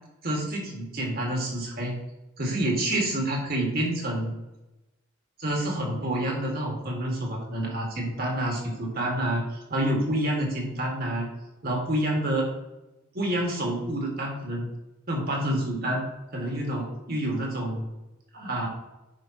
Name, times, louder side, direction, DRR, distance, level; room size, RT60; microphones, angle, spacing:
voice 1, 0.2-2.0 2.4-4.3 5.4-11.3 11.6-12.4 13.1-14.7 15.1-16.1 16.3-17.9 18.3-18.7, right 1 dB, 45° right, 0 dB, 2.0 m, -28 dB
10.5 x 5.2 x 3.0 m, 1.0 s
head